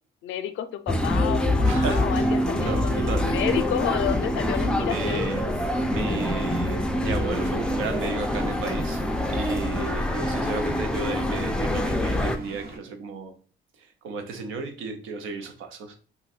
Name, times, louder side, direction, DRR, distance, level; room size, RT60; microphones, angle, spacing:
voice 1, 0.2-5.3, left 10 dB, 75° left, 0.5 m, -30 dB
sound 1, 0.9-12.4, left 1 dB, 5° left, 0.3 m, -25 dB
voice 2, 1.6-3.5 4.9-5.5 5.9-13.3 13.8-16.0, right 4 dB, 85° right, 0.6 m, -34 dB
sound 2, 2.6-12.8, right 2 dB, 50° right, 0.8 m, -42 dB
2.5 x 2.3 x 4.1 m
cardioid pair, 90°, 20 cm